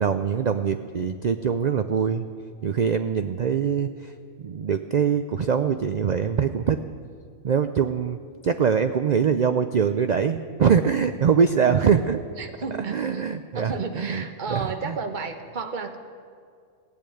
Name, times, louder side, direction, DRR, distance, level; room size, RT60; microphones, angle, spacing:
voice 1, 0.0-2.3 2.6-4.1 4.4-6.8 7.4-12.2 12.9-14.2 14.5-15.0, right 7 dB, 90° right, 9 dB, 0.3 m, -23 dB
voice 2, 12.4-13.2 13.5-16.0, right 4 dB, 40° right, 6 dB, 1.1 m, -32 dB
16.5 x 8.5 x 9.1 m, 2.2 s
omnidirectional pair, 1.4 m